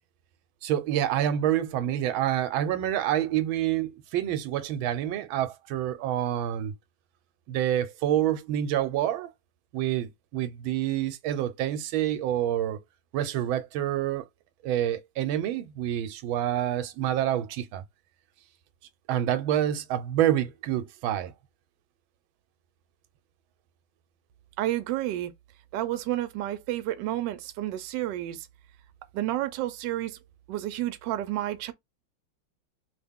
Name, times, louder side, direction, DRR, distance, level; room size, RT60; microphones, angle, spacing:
voice 1, 0.6-6.7 7.5-9.3 9.7-12.8 13.1-14.2 14.6-17.8 19.1-21.3, right 11 dB, 90° right, 1.4 m, -27 dB
voice 2, 24.6-25.3 25.7-28.5 29.1-30.2 30.5-31.7, right 14 dB, 75° right, 1.2 m, -30 dB
3.4 x 2.3 x 3.5 m
omnidirectional pair, 2.1 m